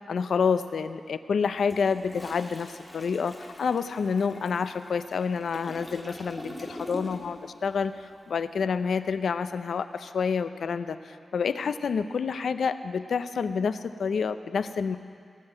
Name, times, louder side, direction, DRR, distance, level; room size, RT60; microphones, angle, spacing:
voice 1, 0.1-15.0, left 5 dB, 80° left, 11 dB, 0.6 m, -28 dB
Toilet flush, 1.5-7.5 7.7-8.0, left 1 dB, 10° left, 2.0 m, -43 dB
18.5 x 7.6 x 9.0 m, 2.3 s
wide cardioid pair, 165°, 0 cm